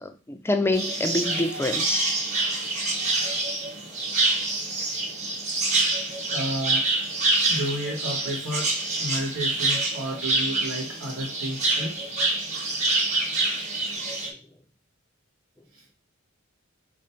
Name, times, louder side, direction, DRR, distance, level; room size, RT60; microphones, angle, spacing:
voice 1, 0.0-2.1, left 2 dB, 10° left, 0.4 m, -26 dB
sound 1, 0.7-14.3, right 2 dB, 35° right, 1.1 m, -26 dB
voice 2, 6.3-6.9 7.5-12.0 15.7-15.8, equal, 90° right, 1.1 m, -32 dB
4.2 x 2.6 x 4.3 m
head